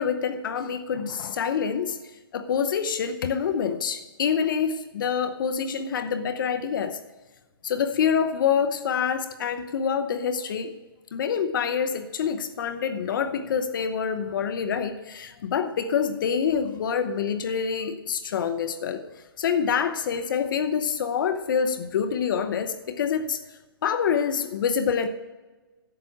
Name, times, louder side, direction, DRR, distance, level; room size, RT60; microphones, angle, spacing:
voice 1, 0.0-2.0 2.3-7.0 7.6-10.7 11.1-25.1, left 7 dB, 60° left, 10 dB, 0.9 m, -26 dB
11.0 x 7.6 x 6.0 m, 1.2 s
hypercardioid pair, 140°, 12 cm